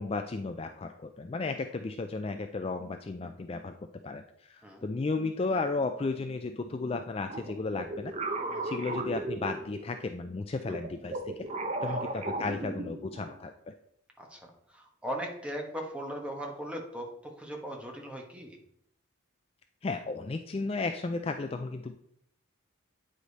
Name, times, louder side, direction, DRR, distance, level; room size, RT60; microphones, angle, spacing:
voice 1, 0.0-3.8 4.0-8.1 8.6-11.2 11.8-13.7 19.8-22.0, left 3 dB, 25° left, 6 dB, 0.3 m, -34 dB
sound 1, 7.3-10.0 10.6-13.3, right 2 dB, 30° right, 0.7 m, -36 dB
voice 2, 14.2-18.6, equal, 5° right, 1 dB, 1.2 m, -39 dB
9.0 x 5.0 x 4.1 m, 0.72 s
head